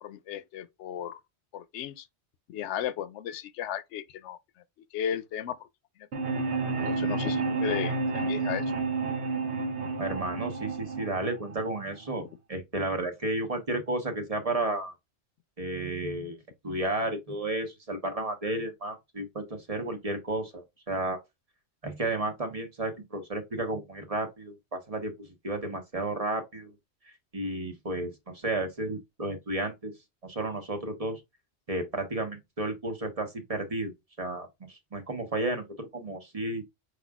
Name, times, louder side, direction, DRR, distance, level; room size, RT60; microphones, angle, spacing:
voice 1, 0.0-1.2 1.5-2.1 2.5-4.4 4.9-5.7 6.0-6.1 6.8-8.6, left 10 dB, 90° left, 0.9 m, -35 dB
sound 1, 6.1-12.1, right 3 dB, 80° right, 1.1 m, -30 dB
voice 2, 10.0-14.9 15.6-16.4 16.6-21.2 21.8-26.7 27.3-29.9 30.2-31.2 31.7-33.9 34.2-36.6, right 2 dB, 35° right, 1.1 m, -32 dB
5.1 x 4.1 x 2.3 m
omnidirectional pair, 1.1 m